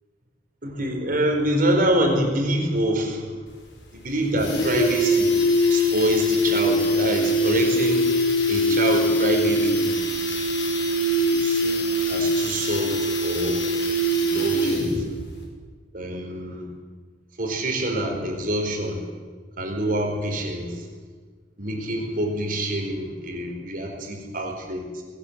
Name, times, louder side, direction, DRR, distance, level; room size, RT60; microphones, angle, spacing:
voice 1, 0.6-3.4 3.9-5.3 5.7-8.1 8.5-10.0 11.3-13.0 13.2-13.6 14.2-14.9 15.9-16.7 17.4-19.1 19.6-20.9 21.6-25.0, right 1 dB, 50° right, 2 dB, 4.7 m, -26 dB
sound 1, 3.5-3.6 3.9-4.0 4.2-15.1 15.4-15.5, equal, 80° left, 5.7 m, -22 dB
20.5 x 18.0 x 8.0 m, 1.5 s
head